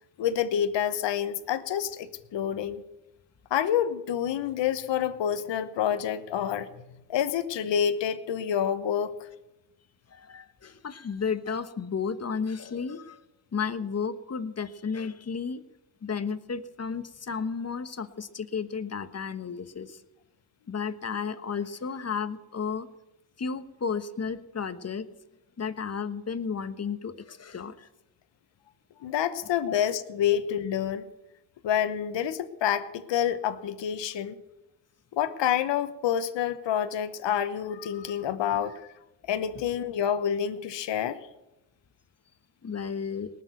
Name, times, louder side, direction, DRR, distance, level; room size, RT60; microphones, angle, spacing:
voice 1, 0.2-2.8 3.5-6.7 7.1-9.1 29.0-31.0 31.6-34.4 35.1-38.8 39.3-41.2, left 9 dB, 65° left, 11 dB, 1.1 m, -28 dB
voice 2, 10.1-13.2 13.5-15.6 16.0-20.0 20.7-22.9 23.4-25.1 25.6-27.9 29.7-29.8 38.5-38.6 39.5-39.6 42.6-43.3, left 6 dB, 30° left, 12 dB, 1.2 m, -33 dB
19.0 x 6.8 x 9.2 m, 0.94 s
supercardioid pair, 65°, 48 cm